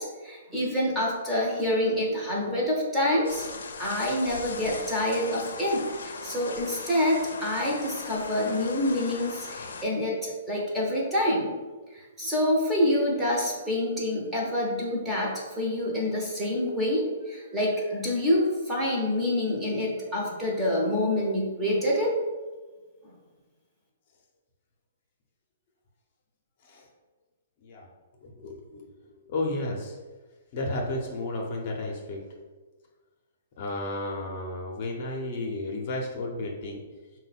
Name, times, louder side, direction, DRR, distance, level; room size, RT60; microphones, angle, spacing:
voice 1, 0.0-3.4 3.8-11.5 11.9-22.1, left 1 dB, 5° right, -5 dB, 0.8 m, -27 dB
sound 1, 3.2-9.8, left 4 dB, 85° left, 0.5 m, -39 dB
voice 2, 28.2-28.9 29.3-30.0 30.5-32.2 33.6-36.8, left 2 dB, 40° left, 0 dB, 0.7 m, -32 dB
4.6 x 2.2 x 4.1 m, 1.3 s
hypercardioid pair, 165°, 0 cm